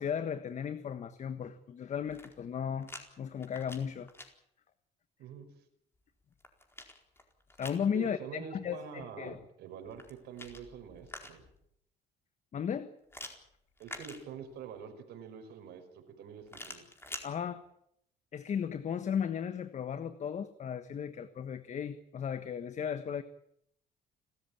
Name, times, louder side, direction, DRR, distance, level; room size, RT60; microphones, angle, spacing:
voice 1, 0.0-2.9 3.2-4.1 7.6-9.4 12.5-12.9 17.2-17.6 18.3-23.2, left 8 dB, 45° left, 11 dB, 1.4 m, -35 dB
sound 1, 2.0-3.0 3.4-4.3 6.0-7.9 9.8-11.6 13.1-14.7 16.5-17.3, left 2 dB, 15° left, 4.4 m, -47 dB
voice 2, 7.9-11.5 13.8-16.9, right 7 dB, 80° right, 7 dB, 5.5 m, -46 dB
30.0 x 14.0 x 8.9 m, 0.74 s
cardioid pair, 110°, 17 cm